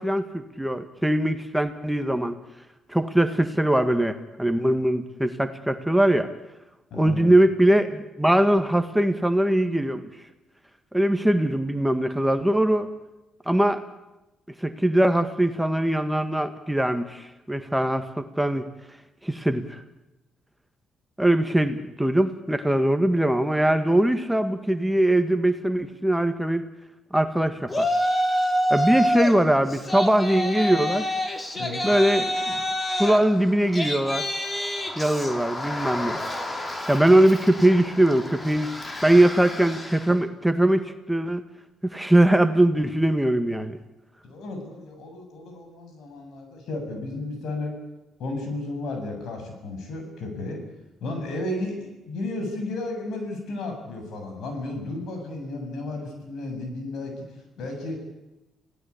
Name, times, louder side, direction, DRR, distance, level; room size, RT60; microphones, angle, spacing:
voice 1, 0.0-2.4 2.9-6.3 6.9-10.1 10.9-12.9 13.5-13.8 14.6-18.6 19.2-19.8 21.2-26.6 27.1-27.9 28.7-31.1 31.8-32.6 33.0-34.3 35.0-36.2 36.9-38.7 39.0-41.4 41.8-43.8, right 1 dB, 5° right, 8 dB, 1.7 m, -21 dB
voice 2, 6.9-7.4 31.5-31.9 38.1-38.3 38.6-39.2 43.2-43.3 44.2-47.7 48.2-50.6 51.0-58.0, left 2 dB, 75° left, 4 dB, 7.6 m, -33 dB
Yell, 27.7-29.4 29.7-40.1, equal, 25° left, 3.2 m, -28 dB
28.5 x 17.0 x 8.5 m, 0.99 s
cardioid pair, 90°, 0 cm